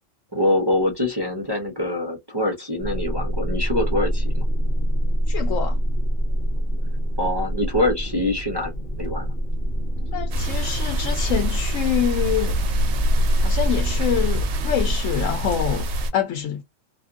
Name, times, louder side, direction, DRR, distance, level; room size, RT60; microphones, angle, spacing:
voice 1, 0.3-4.4 7.2-8.7 9.0-9.3, left 1 dB, 25° right, 0.7 m, -24 dB
sound 1, 2.8-15.0, right 1 dB, 50° left, 1.2 m, -25 dB
voice 2, 5.3-5.8 10.1-12.6 13.4-16.6, left 10 dB, 90° left, 1.0 m, -26 dB
sound 2, 10.3-16.1, right 1 dB, 65° right, 0.8 m, -25 dB
2.5 x 2.5 x 2.4 m
omnidirectional pair, 1.3 m